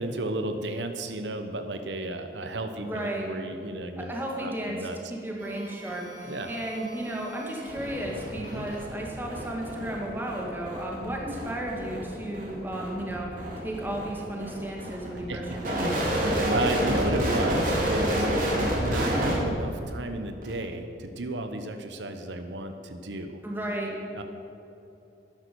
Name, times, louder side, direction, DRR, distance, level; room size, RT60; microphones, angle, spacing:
voice 1, 0.0-5.0 6.2-6.5 8.3-8.7 15.3-18.5 18.8-23.4 24.1-24.2, right 2 dB, 80° right, 7 dB, 0.9 m, -33 dB
voice 2, 2.8-3.3 4.0-15.9 23.4-24.0, right 1 dB, 10° right, -1 dB, 2.1 m, -34 dB
sound 1, 5.4-19.4 20.4-20.6, right 1 dB, 45° right, 2.8 m, -30 dB
12.5 x 10.5 x 6.9 m, 2.9 s
head